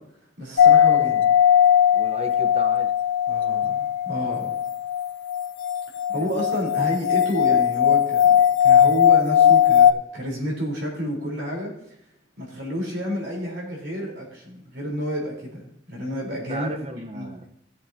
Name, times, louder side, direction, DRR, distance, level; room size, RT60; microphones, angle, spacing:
voice 1, 0.4-1.2 3.3-4.5 6.1-11.7 12.4-16.7 17.1-17.3, equal, 60° right, -3 dB, 3.9 m, -30 dB
sound 1, 0.6-9.9, left 9 dB, 80° left, 0.6 m, -18 dB
voice 2, 1.9-2.9 6.1-6.3 16.5-17.5, right 1 dB, 30° right, 6 dB, 0.9 m, -35 dB
18.0 x 7.6 x 2.8 m, 0.76 s
head